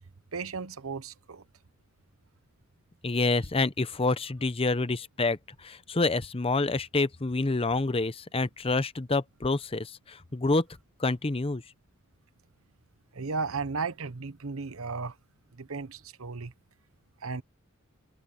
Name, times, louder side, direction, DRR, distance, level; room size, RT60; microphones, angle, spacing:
voice 1, 0.3-1.4 3.1-3.2 13.1-15.2 15.5-16.5 17.2-17.4, right 4 dB, 85° right, 0.9 m, -35 dB
voice 2, 3.0-10.7 11.0-11.6, left 3 dB, 25° left, 0.7 m, -27 dB
head